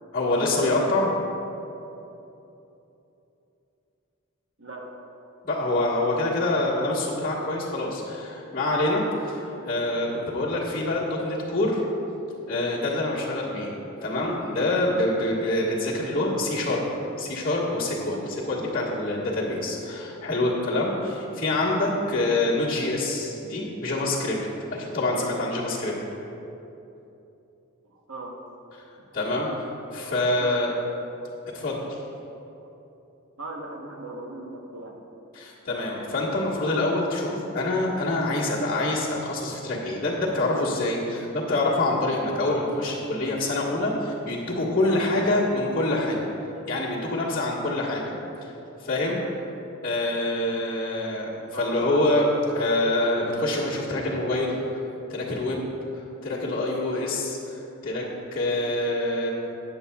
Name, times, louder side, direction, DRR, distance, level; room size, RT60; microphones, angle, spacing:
voice 1, 0.1-1.1 5.4-11.8 12.4-13.7 14.0-16.9 17.2-25.9 29.1-29.5 29.9-30.7 31.5-32.0 35.3-46.2 46.7-48.1 48.8-49.2 49.8-52.3 52.5-54.5 55.1-55.6 56.2-59.3, left 2 dB, 40° left, -9 dB, 1.6 m, -26 dB
voice 2, 4.6-5.0 27.8-28.4 29.0-29.1 29.9-30.5 33.4-35.0 51.5-51.8, right 2 dB, 70° right, 1 dB, 1.1 m, -39 dB
14.0 x 9.1 x 2.4 m, 2.9 s
head